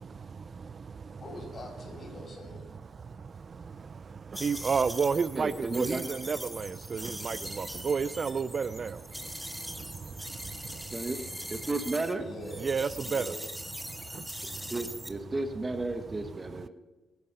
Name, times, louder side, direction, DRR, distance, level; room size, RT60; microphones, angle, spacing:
voice 1, 1.2-2.7 12.2-13.5, left 1 dB, 40° left, 2 dB, 6.1 m, -44 dB
sound 1, 4.3-12.1 12.4-15.1, equal, ahead, 1.6 m, -41 dB
voice 2, 4.4-7.0 7.2-8.9 12.6-13.2, right 5 dB, 45° right, 16 dB, 0.5 m, -30 dB
voice 3, 5.3-6.0 10.9-11.2 11.5-12.2 14.7-16.7, right 2 dB, 25° right, 7 dB, 1.5 m, -33 dB
22.5 x 11.0 x 5.6 m, 1.2 s
cardioid pair, 90°, 0 cm